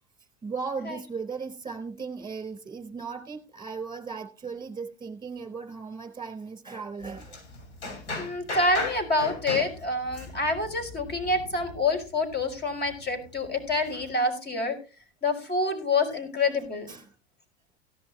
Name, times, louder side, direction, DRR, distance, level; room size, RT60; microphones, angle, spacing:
voice 1, 0.4-7.4 16.9-17.1, right 5 dB, 15° right, 6 dB, 3.8 m, -37 dB
sound 1, 7.0-14.1, left 2 dB, 75° left, 7.1 m, -38 dB
voice 2, 8.2-14.8 15.2-16.9, left 2 dB, 30° left, 6 dB, 5.2 m, -27 dB
17.5 x 11.0 x 3.0 m, 0.33 s
hypercardioid pair, 90°, 33 cm